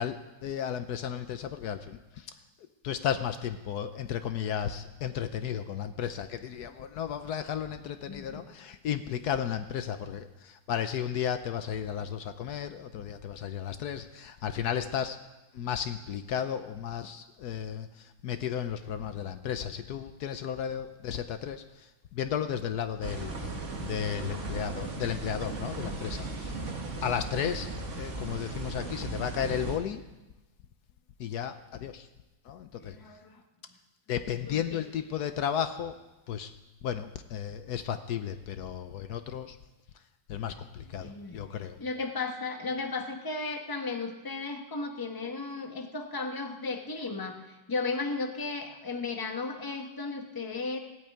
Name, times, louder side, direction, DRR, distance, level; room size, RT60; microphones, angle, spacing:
voice 1, 0.0-2.3 2.8-15.2 15.5-26.7 27.0-30.0 31.2-32.1 32.4-33.0 34.1-36.0 36.3-36.5 36.8-39.6 40.3-41.8, left 9 dB, 70° left, 10 dB, 1.2 m, -34 dB
voice 2, 8.1-8.4 32.8-33.4 34.4-34.8 40.9-41.4 41.8-50.8, left 3 dB, 15° left, 4 dB, 1.1 m, -35 dB
sound 1, 23.0-29.8, right 3 dB, 45° right, 1.9 m, -37 dB
16.0 x 8.7 x 8.9 m, 1.1 s
omnidirectional pair, 1.8 m